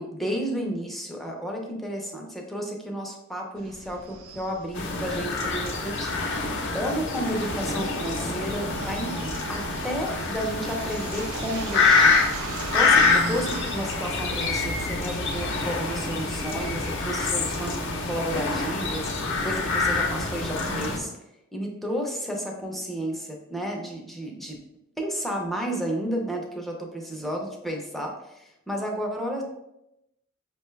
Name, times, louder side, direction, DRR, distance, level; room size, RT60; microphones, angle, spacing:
voice 1, 0.0-6.2 6.7-12.1 12.7-21.1 21.5-24.6 25.0-29.4, equal, ahead, 0 dB, 0.5 m, -32 dB
sound 1, 3.6-16.7, right 5 dB, 80° right, 0.4 m, -41 dB
sound 2, 4.8-21.0, left 3 dB, 60° left, 0.6 m, -26 dB
5.3 x 2.3 x 3.1 m, 0.86 s
head